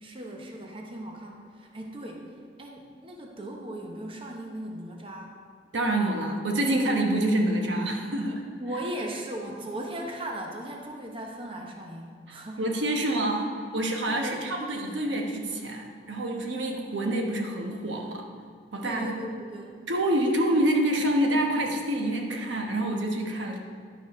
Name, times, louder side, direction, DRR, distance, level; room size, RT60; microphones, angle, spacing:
voice 1, 0.0-2.3 2.6-5.3 8.6-12.6 14.1-14.4 18.8-19.8, right 1 dB, 30° right, 0 dB, 0.8 m, -37 dB
voice 2, 5.7-8.4 12.3-18.2 18.7-19.2 19.9-23.6, right 1 dB, 85° right, 1 dB, 1.1 m, -27 dB
11.0 x 4.9 x 5.3 m, 2.1 s
head